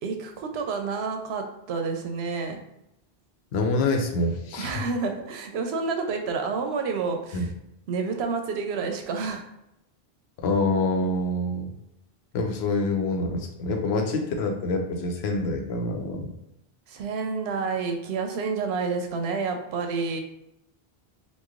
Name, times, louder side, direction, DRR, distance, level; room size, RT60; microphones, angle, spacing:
voice 1, 0.0-2.6 4.6-7.5 7.9-9.4 16.9-20.2, right 4 dB, 90° right, 4 dB, 0.8 m, -29 dB
voice 2, 3.5-4.8 7.3-7.5 10.4-11.7 12.3-16.3, left 2 dB, 85° left, 3 dB, 0.9 m, -26 dB
3.0 x 2.2 x 3.6 m, 0.83 s
omnidirectional pair, 1.0 m